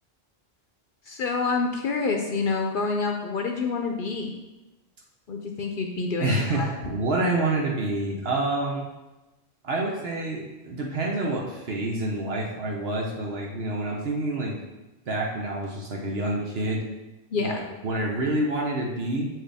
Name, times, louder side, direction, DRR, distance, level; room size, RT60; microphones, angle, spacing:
voice 1, 1.0-4.3 5.3-6.7 17.3-17.6, left 4 dB, 60° left, 2 dB, 0.8 m, -27 dB
voice 2, 6.2-8.8 9.6-14.6 15.1-16.8 17.4-19.3, right 2 dB, 75° right, -1 dB, 1.2 m, -27 dB
7.5 x 4.6 x 3.4 m, 1.1 s
omnidirectional pair, 1.1 m